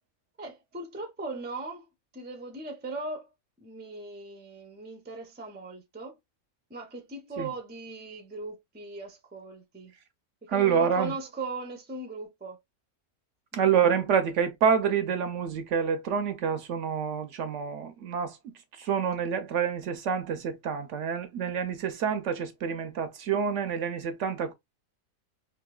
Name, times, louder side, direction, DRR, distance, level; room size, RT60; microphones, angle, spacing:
voice 1, 0.4-1.9 2.1-3.3 3.6-6.2 6.7-10.0 10.5-12.6 13.5-13.9, right 3 dB, 15° right, 0.4 m, -39 dB
voice 2, 10.5-11.1 13.5-24.5, right 7 dB, 65° right, 0.8 m, -27 dB
3.7 x 2.7 x 2.2 m
omnidirectional pair, 1.5 m